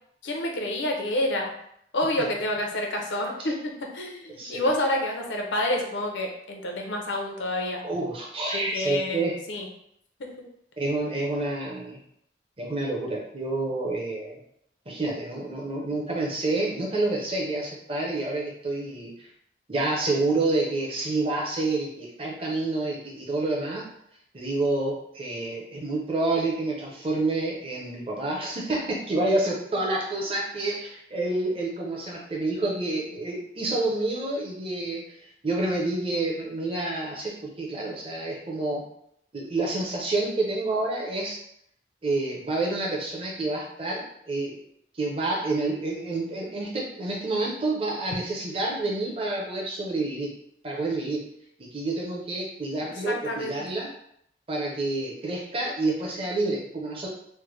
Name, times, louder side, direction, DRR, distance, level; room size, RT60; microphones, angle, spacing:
voice 1, 0.2-1.5 1.9-7.8 8.5-9.2 9.5-9.7 10.2-10.4 53.0-53.6, left 1 dB, 90° left, 1 dB, 0.6 m, -28 dB
voice 2, 4.3-4.7 7.8-9.4 10.8-12.0 12.6-14.4 14.9-19.3 19.7-23.9 24.3-35.1 35.4-38.8 39.3-41.4 42.0-44.6 44.9-50.3 50.6-51.2 51.6-53.9 54.5-57.1, right 2 dB, 30° right, -3 dB, 0.6 m, -28 dB
3.2 x 2.1 x 3.1 m, 0.71 s
head